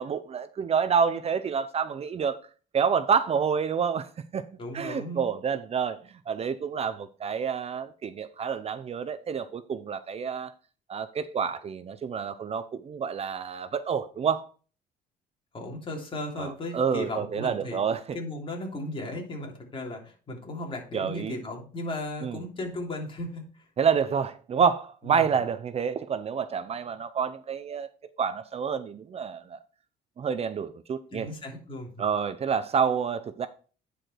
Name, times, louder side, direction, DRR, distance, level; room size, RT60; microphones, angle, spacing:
voice 1, 0.0-2.4 2.7-4.4 4.7-6.0 6.3-10.5 10.9-14.5 16.4-18.2 20.9-21.4 22.2-22.4 23.8-27.9 28.2-29.6 30.2-31.3 32.0-33.5, right 6 dB, 35° right, 0.6 m, -28 dB
voice 2, 4.6-5.2 15.5-17.8 18.1-23.6 25.0-25.4 31.1-32.0, left 1 dB, 30° left, 3.1 m, -36 dB
9.9 x 5.0 x 4.4 m
cardioid pair, 110°, 17 cm